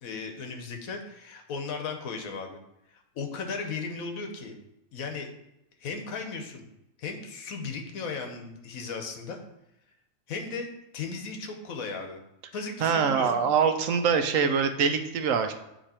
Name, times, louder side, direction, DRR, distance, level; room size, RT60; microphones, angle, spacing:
voice 1, 0.0-2.6 3.1-4.6 4.9-5.3 5.8-6.7 7.0-9.4 10.3-10.7 10.9-12.2 12.5-13.7, left 4 dB, 80° left, 4 dB, 1.3 m, -36 dB
voice 2, 12.8-15.5, right 6 dB, 75° right, 8 dB, 0.9 m, -24 dB
8.6 x 2.9 x 4.2 m, 0.87 s
omnidirectional pair, 1.5 m